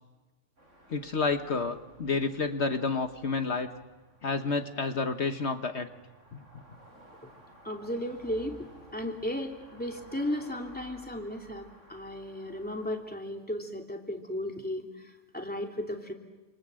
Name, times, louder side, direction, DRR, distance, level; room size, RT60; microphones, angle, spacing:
sound 1, 0.6-13.0, right 1 dB, 80° right, 8.7 m, -55 dB
voice 1, 0.9-3.7 4.2-5.9 6.3-6.4, left 4 dB, 65° left, 7 dB, 1.5 m, -30 dB
voice 2, 7.6-8.7 8.9-16.1, left 1 dB, 5° left, 2 dB, 2.8 m, -35 dB
27.5 x 27.5 x 7.7 m, 1.2 s
omnidirectional pair, 1.2 m